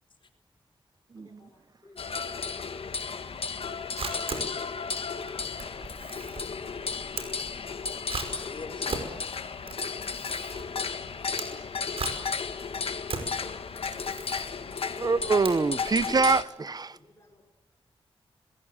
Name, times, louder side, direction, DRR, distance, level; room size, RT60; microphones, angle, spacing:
voice 1, 1.1-1.5 8.9-9.0 15.0-17.0, right 4 dB, 40° right, 0.9 m, -25 dB
voice 2, 1.8-2.1 3.0-3.1 4.0-4.1 5.4-7.5 9.7-9.8 16.9-17.4, left 2 dB, 30° left, 6.0 m, -58 dB
sound 1, 2.0-16.4, left 5 dB, 75° left, 1.6 m, -34 dB
Camera, 3.9-16.0, right 4 dB, 75° right, 5.4 m, -39 dB
voice 3, 4.1-4.6 8.3-9.3 15.8-16.2, left 4 dB, 60° left, 4.3 m, -45 dB
24.5 x 21.0 x 8.7 m
wide cardioid pair, 75°, 10 cm